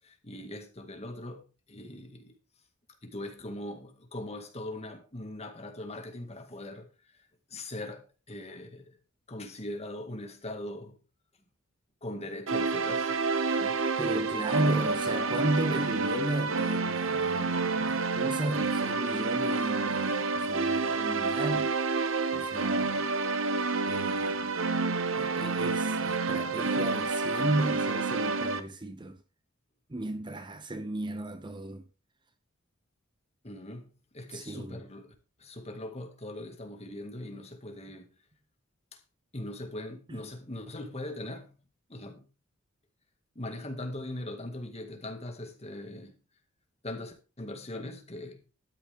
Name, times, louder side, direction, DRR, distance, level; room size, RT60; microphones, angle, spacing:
voice 1, 0.0-2.3 3.0-6.9 7.5-9.0 9.3-11.0 12.0-13.1 13.6-13.8 33.4-35.1 35.4-38.1 38.9-39.0 39.3-41.5 41.9-42.3 43.4-46.2 46.8-48.4, left 1 dB, 30° left, 2.0 m, -40 dB
sound 1, 12.5-28.6, right 4 dB, 70° right, 1.0 m, -29 dB
voice 2, 14.0-21.7 22.3-23.1 23.8-24.6 25.1-29.2 29.9-31.8 34.3-34.8 40.1-40.3, right 2 dB, 20° right, 0.7 m, -34 dB
12.5 x 9.0 x 3.6 m
head